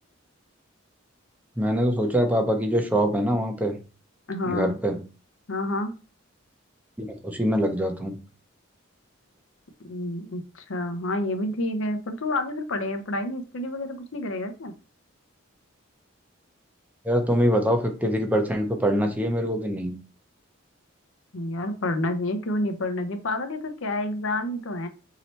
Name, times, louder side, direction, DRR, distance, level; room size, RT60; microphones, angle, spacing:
voice 1, 1.6-3.8 4.4-5.0 7.0-8.2 17.0-19.9, equal, 10° right, 4 dB, 0.6 m, -24 dB
voice 2, 4.3-4.8 5.5-5.9 9.8-14.7 21.3-24.9, left 1 dB, 70° left, 7 dB, 0.7 m, -29 dB
3.1 x 2.9 x 4.2 m, 0.34 s
head